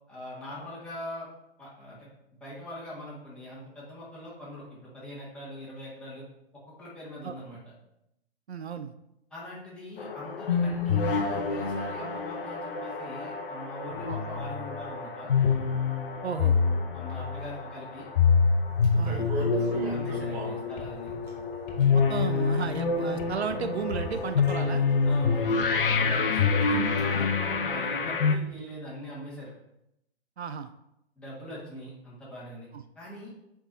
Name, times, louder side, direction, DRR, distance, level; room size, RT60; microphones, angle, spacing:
voice 1, 0.1-1.3 1.6-6.2 6.8-7.6 9.3-15.3 16.9-18.1 19.3-21.2 25.0-25.4 25.7-29.5 31.2-32.7 33.0-33.3, left 1 dB, 5° left, -7 dB, 1.7 m, -42 dB
voice 2, 8.5-8.9 14.1-14.2 16.2-16.6 18.9-19.3 21.9-24.8 26.4-26.5 30.4-30.7 32.7-32.8, right 6 dB, 75° right, 9 dB, 0.5 m, -34 dB
sound 1, 10.0-28.4, left 5 dB, 55° left, 0.6 m, -27 dB
sound 2, 18.8-20.6 21.3-22.1 23.0-23.1 23.8-24.5 24.9-25.1 25.5-25.6 26.0-26.3 26.6-27.0 27.5-27.6, right 3 dB, 35° right, 1.7 m, -37 dB
sound 3, 19.9-28.5, left 2 dB, 40° left, 1.4 m, -46 dB
7.9 x 4.5 x 2.7 m, 0.84 s
figure-of-eight pair, 120°, 33 cm